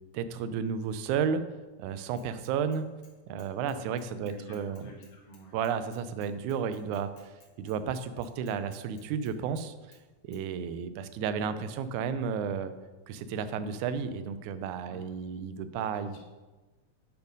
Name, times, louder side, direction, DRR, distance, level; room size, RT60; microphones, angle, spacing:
voice 1, 0.1-1.5 1.8-2.9 3.3-4.8 5.5-10.0 10.2-12.7 13.1-16.3, right 7 dB, 85° right, 11 dB, 2.0 m, -32 dB
Bicycle / Mechanisms, 2.2-3.1 3.4-9.7 9.9-10.0 10.3-10.4, left 5 dB, 60° left, 2.3 m, -60 dB
voice 2, 3.6-3.9 4.2-5.6 14.8-15.0, right 2 dB, 35° left, -3 dB, 1.1 m, -49 dB
8.1 x 4.5 x 5.2 m, 1.2 s
omnidirectional pair, 3.4 m